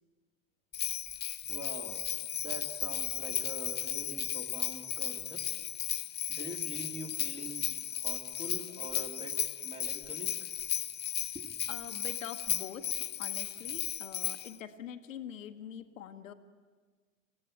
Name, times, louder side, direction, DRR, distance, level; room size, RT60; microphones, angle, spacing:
Bell, 0.7-14.5, left 11 dB, 25° left, 0.7 m, -35 dB
voice 1, 1.5-5.5 6.3-10.5 11.3-11.5, equal, 15° right, 4 dB, 2.6 m, -45 dB
voice 2, 11.7-16.3, left 9 dB, 80° left, 7 dB, 1.2 m, -44 dB
20.5 x 16.0 x 8.7 m, 1.5 s
hypercardioid pair, 85°, 39 cm